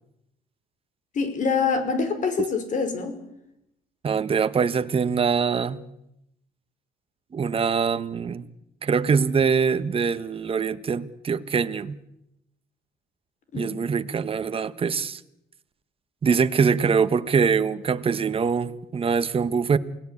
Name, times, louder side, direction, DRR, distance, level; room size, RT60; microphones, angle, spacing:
voice 1, 1.1-3.2 13.5-13.8, left 5 dB, 50° left, 5.2 m, -25 dB
voice 2, 4.0-5.8 7.3-8.4 8.8-12.0 13.5-15.2 16.2-19.8, right 6 dB, 35° right, 1.3 m, -23 dB
28.5 x 18.5 x 8.6 m
cardioid pair, 110°, 17 cm